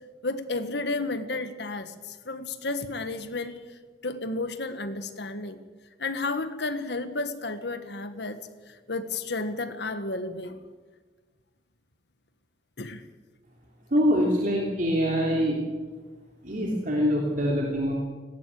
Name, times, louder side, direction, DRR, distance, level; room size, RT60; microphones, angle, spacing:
voice 1, 0.2-3.6 4.0-5.6 6.0-8.4 8.7-10.6 12.8-13.0, left 3 dB, 65° left, 10 dB, 1.6 m, -32 dB
voice 2, 13.9-15.6 16.4-17.9, equal, 50° right, -2 dB, 3.0 m, -24 dB
18.0 x 17.0 x 8.5 m, 1.4 s
head